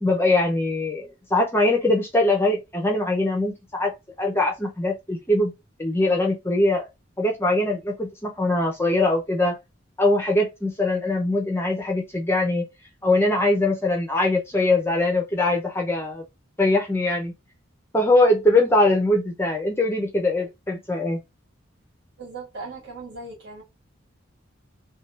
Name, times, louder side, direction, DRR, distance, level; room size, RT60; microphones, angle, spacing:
voice 1, 0.0-3.9 4.2-5.5 5.8-6.9 7.2-9.6 10.0-12.6 13.0-16.2 16.6-17.3 17.9-21.2, left 2 dB, 10° left, 0.6 m, -22 dB
voice 2, 22.2-23.6, right 3 dB, 55° right, 2.1 m, -38 dB
3.5 x 2.3 x 2.5 m
head